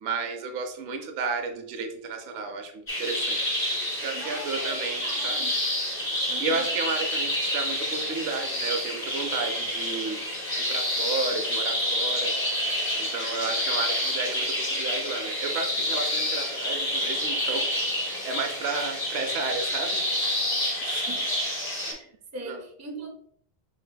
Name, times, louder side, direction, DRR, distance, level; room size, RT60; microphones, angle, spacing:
voice 1, 0.0-3.4 4.0-5.4 6.4-10.2 10.5-12.3 13.0-17.7 17.9-20.0 20.8-21.1 21.9-22.0 22.5-22.6, right 4 dB, 80° right, 5 dB, 0.8 m, -32 dB
sound 1, 2.9-21.9, left 1 dB, 60° left, 1.9 m, -28 dB
voice 2, 4.1-5.6 6.3-6.7 21.1-21.3 21.8-23.1, right 2 dB, 30° right, 1 dB, 0.3 m, -41 dB
5.9 x 2.9 x 2.2 m, 0.64 s
omnidirectional pair, 1.1 m